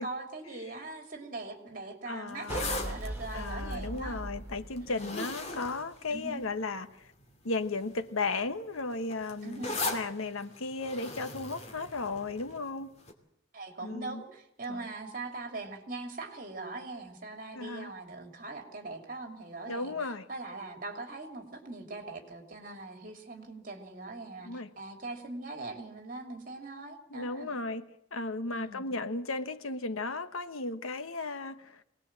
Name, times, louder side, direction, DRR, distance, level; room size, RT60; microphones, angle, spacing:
voice 1, 0.0-4.2 4.8-5.1 6.1-6.4 9.4-9.8 13.5-27.6 28.5-28.9, right 2 dB, 40° right, 3.1 m, -41 dB
voice 2, 2.1-3.0 3.3-7.1 7.4-12.9 13.8-14.2 14.7-14.9 17.5-17.9 19.7-20.2 24.4-24.7 27.1-31.8, left 3 dB, 85° left, 1.2 m, -35 dB
sound 1, 2.3-6.7 7.5-7.8 8.0-12.6 13.1-13.2, left 2 dB, 30° left, 2.6 m, -39 dB
sound 2, 2.5-5.7, right 1 dB, 10° right, 1.5 m, -39 dB
22.5 x 19.0 x 7.5 m
head